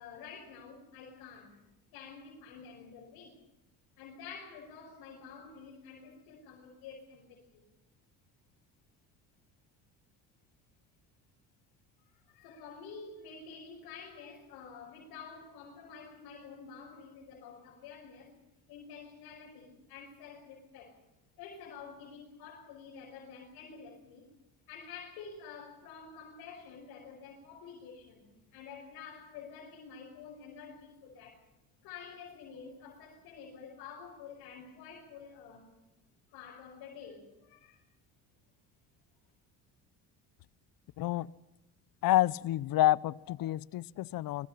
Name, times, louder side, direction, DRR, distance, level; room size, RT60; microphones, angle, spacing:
voice 1, 0.0-1.6 1.9-3.4 4.0-7.6 12.0-18.3 18.7-21.0 21.4-24.3 24.7-31.4 31.8-35.7 36.3-37.8, left 6 dB, 90° left, -2 dB, 5.7 m, -49 dB
voice 2, 41.0-41.3 42.0-44.5, left 14 dB, 70° left, 21 dB, 0.8 m, -28 dB
26.0 x 22.5 x 5.7 m, 0.98 s
cardioid pair, 90°, 36 cm